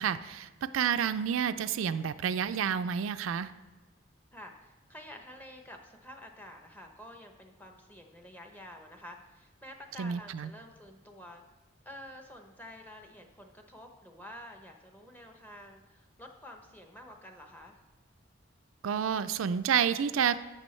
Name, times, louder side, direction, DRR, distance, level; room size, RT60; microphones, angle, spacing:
voice 1, 0.0-3.5 10.0-10.5 18.8-20.4, right 8 dB, 85° right, 11 dB, 0.4 m, -29 dB
voice 2, 4.3-11.4 11.8-17.8, left 1 dB, 10° left, 3 dB, 0.7 m, -49 dB
11.5 x 7.8 x 3.2 m, 1.2 s
head